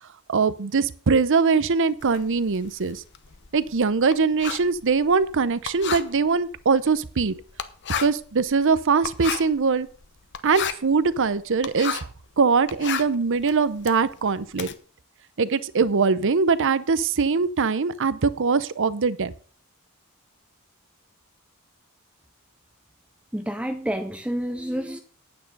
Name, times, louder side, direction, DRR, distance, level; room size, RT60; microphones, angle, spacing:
voice 1, 0.3-3.0 3.5-7.4 8.0-9.9 10.4-12.1 12.4-14.7 15.4-19.3, right 5 dB, 60° right, 0.7 m, -22 dB
Writing, 2.0-12.2 12.6-14.7, left 8 dB, 50° left, 0.9 m, -34 dB
voice 2, 23.3-25.0, equal, 5° right, 0.7 m, -29 dB
9.6 x 9.0 x 5.3 m
head